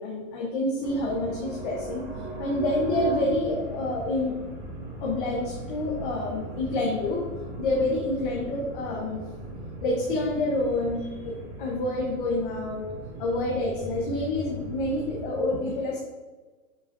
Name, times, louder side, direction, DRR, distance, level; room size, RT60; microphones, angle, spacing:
voice 1, 0.0-2.0 2.4-4.4 5.0-7.3 7.6-9.2 9.8-12.9 13.2-16.0, left 2 dB, 35° left, -3 dB, 1.0 m, -28 dB
sound 1, 0.8-15.4, right 2 dB, 10° right, 0.5 m, -37 dB
7.5 x 5.9 x 2.6 m, 1.3 s
hypercardioid pair, 155°, 45 cm